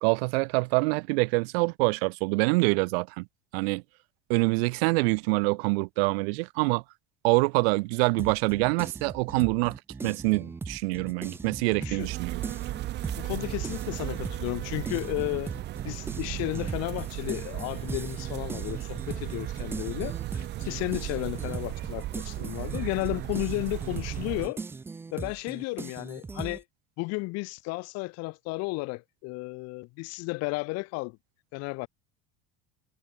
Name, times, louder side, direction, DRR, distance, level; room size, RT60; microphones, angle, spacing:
voice 1, 0.0-3.3 3.5-3.8 4.3-6.8 7.2-9.8 10.0-12.4 22.4-22.5, right 28 dB, 85° right, 0.5 m, -25 dB
sound 1, 8.2-12.1 12.4-26.6, right 4 dB, 10° right, 0.4 m, -39 dB
sound 2, 12.0-24.5, right 15 dB, 35° right, 0.9 m, -35 dB
voice 2, 13.2-15.5 15.8-24.6 25.1-26.6 27.0-31.2 31.5-31.9, left 25 dB, 55° left, 1.8 m, -33 dB
cardioid pair, 155°, 30 cm